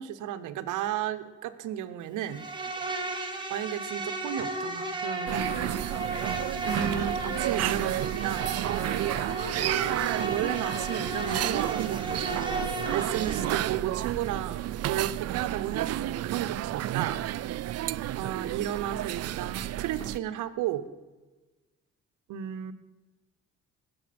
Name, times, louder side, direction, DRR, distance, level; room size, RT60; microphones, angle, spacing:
voice 1, 0.0-2.4 3.5-5.6 6.6-8.6 9.9-17.2 18.1-20.8 22.3-22.7, right 11 dB, 90° right, 11 dB, 1.0 m, -33 dB
Insect, 2.3-13.7, right 2 dB, 15° right, 2.2 m, -34 dB
sound 1, 5.3-20.2, right 13 dB, 55° right, 0.4 m, -31 dB
20.0 x 7.3 x 6.0 m, 1.2 s
cardioid pair, 90°, 30 cm